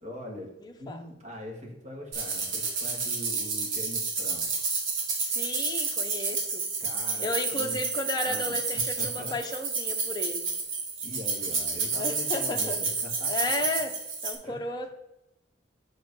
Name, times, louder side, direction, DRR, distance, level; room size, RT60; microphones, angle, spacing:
voice 1, 0.0-0.5 0.8-4.6 6.8-7.8 8.2-8.6 9.0-9.3 11.0-13.5 14.4-14.7, left 1 dB, 35° right, 0 dB, 1.9 m, -42 dB
voice 2, 0.6-1.0 5.2-6.6 7.2-10.5 11.9-12.8 13.3-13.9 14.2-14.9, left 2 dB, 20° left, 3 dB, 0.8 m, -33 dB
sound 1, 2.1-14.3, right 4 dB, 75° right, 1.7 m, -30 dB
6.5 x 5.1 x 5.3 m, 0.86 s
head